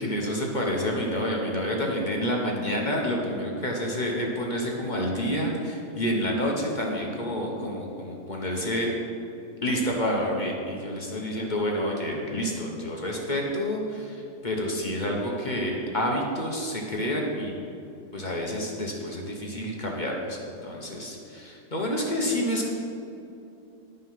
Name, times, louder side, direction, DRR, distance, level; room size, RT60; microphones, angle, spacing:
voice 1, 0.0-8.9 9.6-17.5 18.1-22.7, equal, 35° left, -1 dB, 1.1 m, -28 dB
10.5 x 5.5 x 5.6 m, 2.7 s
omnidirectional pair, 1.7 m